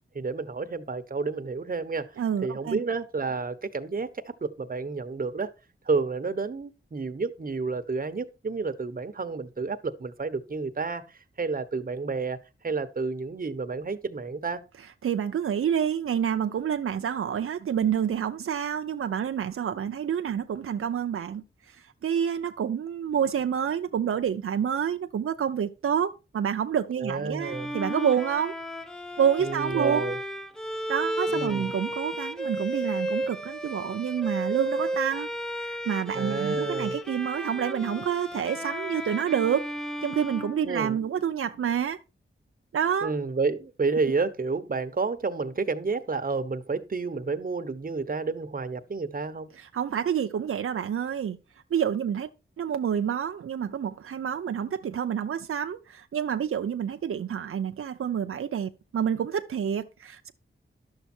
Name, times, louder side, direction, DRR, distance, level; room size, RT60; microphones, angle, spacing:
voice 1, 0.1-2.1 2.4-5.5 5.9-11.0 11.4-12.4 12.6-14.6 27.0-27.8 29.4-30.2 31.3-31.7 36.1-37.0 40.6-41.0 43.0-49.5, right 4 dB, 40° right, 1.1 m, -30 dB
voice 2, 2.2-2.8 15.0-28.5 29.2-30.1 30.9-35.3 35.6-39.7 40.0-42.0 42.7-43.1 49.6-51.4 51.7-52.3 52.6-60.3, right 8 dB, 85° right, 0.6 m, -28 dB
Bowed string instrument, 27.4-41.3, equal, ahead, 1.0 m, -33 dB
11.5 x 7.2 x 4.4 m
wide cardioid pair, 85°, 21 cm